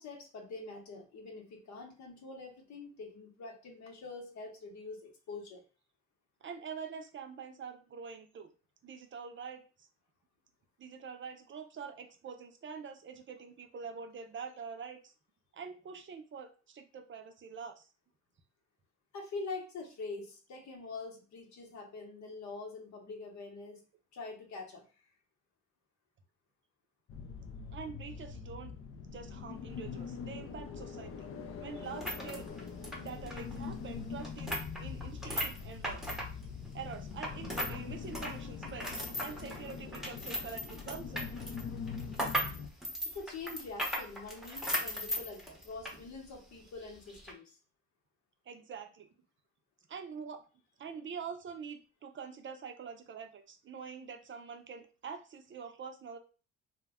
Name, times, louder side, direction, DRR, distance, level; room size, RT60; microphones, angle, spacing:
voice 1, 0.0-5.6 19.1-23.8 24.1-24.8 43.1-47.6, left 3 dB, 70° left, 2 dB, 0.9 m, -45 dB
voice 2, 6.4-8.5 8.8-9.9 10.8-15.1 15.5-17.9 27.7-28.7 29.0-31.1 31.6-32.5 33.0-36.2 36.7-41.3 42.3-42.4 48.5-49.1 49.9-50.4 50.8-56.2, right 6 dB, 40° right, 6 dB, 0.5 m, -45 dB
sound 1, 27.1-42.7, left 6 dB, 45° left, 0.4 m, -43 dB
sound 2, 31.8-37.8 38.0-46.0 46.3-46.4 47.1-47.3, equal, ahead, 0.7 m, -38 dB
2.2 x 2.1 x 3.5 m, 0.35 s
cardioid pair, 90°, 30 cm